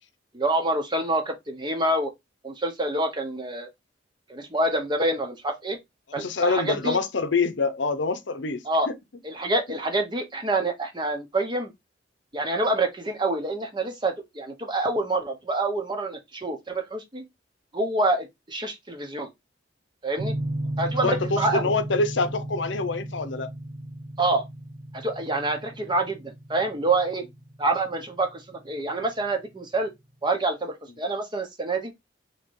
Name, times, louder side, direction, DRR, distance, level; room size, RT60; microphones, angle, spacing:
voice 1, 0.3-2.1 2.4-3.7 4.3-5.8 6.1-7.0 8.6-8.9 9.2-11.7 12.3-17.2 17.7-19.3 20.0-20.3 20.8-21.7 24.2-24.4 24.9-27.2 27.6-29.9 30.2-31.9, right 2 dB, 25° right, 1.0 m, -27 dB
voice 2, 6.2-9.0 20.8-23.5, left 3 dB, 75° left, 0.8 m, -26 dB
sound 1, 20.2-28.9, right 1 dB, 80° right, 1.0 m, -35 dB
3.8 x 3.0 x 4.6 m
head